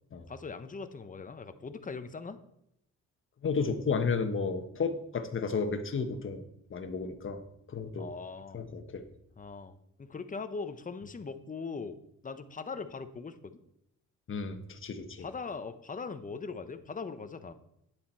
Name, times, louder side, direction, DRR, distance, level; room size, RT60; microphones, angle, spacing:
voice 1, 0.3-2.4 8.0-8.6 9.4-12.0 12.2-13.6 15.2-17.5, left 4 dB, 25° left, 10 dB, 0.9 m, -40 dB
voice 2, 3.4-6.4 6.7-7.4 7.7-8.1 8.5-9.1 14.3-15.3, left 5 dB, 40° left, 7 dB, 1.3 m, -32 dB
9.9 x 7.1 x 4.6 m, 0.77 s
cardioid pair, 90°, 30 cm